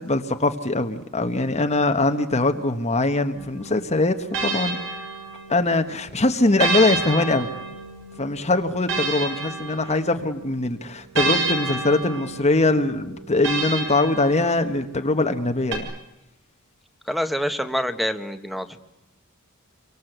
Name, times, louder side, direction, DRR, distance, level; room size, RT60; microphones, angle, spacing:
voice 1, 0.0-4.8 5.5-7.5 8.2-15.9, left 2 dB, 30° left, 6 dB, 1.3 m, -22 dB
sound 1, 3.3-5.8 6.6-10.4 11.2-14.9 15.7-15.8, right 3 dB, 60° right, 6.9 m, -29 dB
voice 2, 17.0-18.8, equal, ahead, 9 dB, 1.5 m, -26 dB
28.0 x 24.5 x 8.0 m, 0.89 s
head